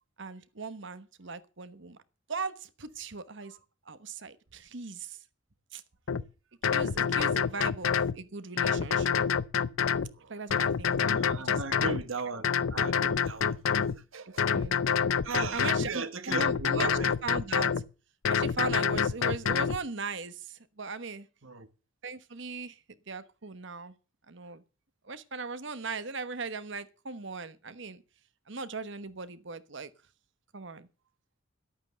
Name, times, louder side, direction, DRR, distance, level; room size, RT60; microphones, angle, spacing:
voice 1, 0.2-2.0 2.3-3.6 3.9-5.2 5.7-5.8 6.7-9.1 10.3-11.1 11.4-12.3 14.5-15.2 15.5-17.7 18.3-21.3 22.0-22.8 23.1-23.9 24.3-24.6 25.0-28.0 28.5-29.9 30.5-30.9, right 4 dB, 60° right, 1.2 m, -39 dB
sound 1, 6.1-6.2 6.6-8.2 8.6-10.1 10.5-12.0 12.4-14.0 14.4-15.9 16.3-17.8 18.2-19.8, left 7 dB, 85° left, 0.6 m, -27 dB
voice 2, 11.0-13.6 14.1-14.7 15.2-17.1 21.4-21.7, right 4 dB, 80° right, 1.4 m, -37 dB
12.0 x 9.0 x 6.8 m
head